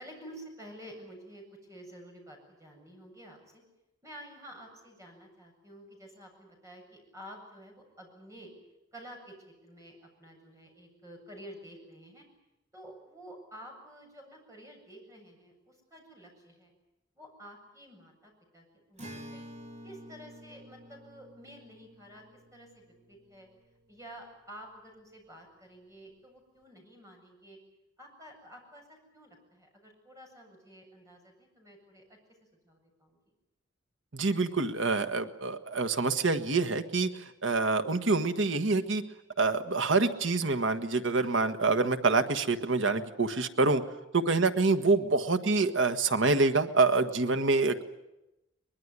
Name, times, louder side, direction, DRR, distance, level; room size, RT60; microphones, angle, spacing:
voice 1, 0.0-3.6 4.0-8.5 8.9-12.2 12.7-16.7 17.2-19.4 19.8-22.2 22.5-23.5 23.9-27.6 28.0-32.2 32.6-33.2 44.5-44.6, equal, 15° right, 1 dB, 7.7 m, -50 dB
Acoustic guitar, 19.0-24.5, equal, 35° right, 2.6 m, -50 dB
voice 2, 34.1-39.0 39.4-43.8 44.1-47.8, right 3 dB, 70° right, 8 dB, 1.5 m, -26 dB
23.0 x 22.0 x 9.7 m, 0.94 s
head